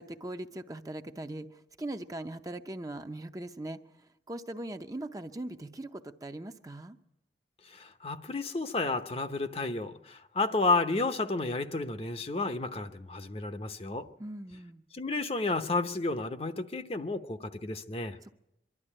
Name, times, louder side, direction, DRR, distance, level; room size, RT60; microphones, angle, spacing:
voice 1, 0.0-7.0 14.2-14.8 18.2-18.5, right 1 dB, 20° right, 0.7 m, -40 dB
voice 2, 7.7-14.1 14.9-18.2, left 3 dB, 35° left, 0.8 m, -31 dB
24.0 x 12.0 x 9.9 m
head